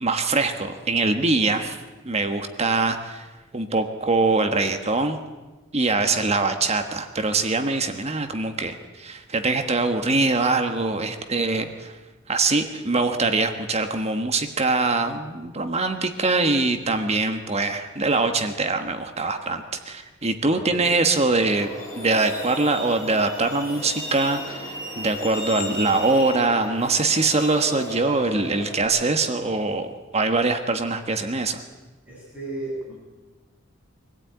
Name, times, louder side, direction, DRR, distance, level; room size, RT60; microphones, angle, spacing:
voice 1, 0.0-3.3 3.5-5.2 5.7-11.9 12.3-21.7 22.0-29.9 30.1-31.6, right 3 dB, 30° right, 6 dB, 1.3 m, -23 dB
voice 2, 20.5-20.9 32.0-33.0, right 2 dB, 10° right, -7 dB, 7.8 m, -35 dB
Truck, 21.4-28.8, equal, 15° left, 6.2 m, -35 dB
25.0 x 16.5 x 9.4 m, 1.2 s
head